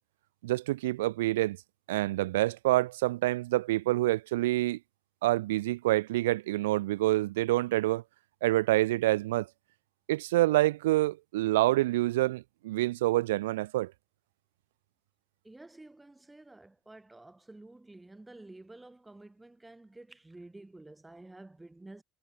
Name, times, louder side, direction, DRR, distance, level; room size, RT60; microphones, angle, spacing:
voice 1, 0.4-1.6 1.9-4.8 5.2-8.0 8.4-9.5 10.1-13.9, right 17 dB, 70° right, 0.7 m, -27 dB
voice 2, 15.4-22.0, right 2 dB, 10° right, 7.9 m, -51 dB
figure-of-eight pair, 60°, 0 cm